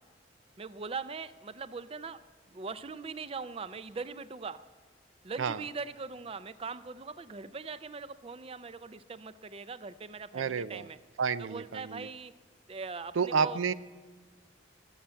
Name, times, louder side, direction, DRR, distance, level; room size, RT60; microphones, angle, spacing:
voice 1, 0.6-2.2 2.5-4.6 5.2-11.0 11.4-12.3 12.7-13.6, right 4 dB, 30° right, 14 dB, 0.4 m, -41 dB
voice 2, 10.3-10.9 11.2-12.1 13.2-13.7, right 5 dB, 90° right, 16 dB, 0.5 m, -30 dB
20.5 x 7.1 x 8.8 m, 1.4 s
head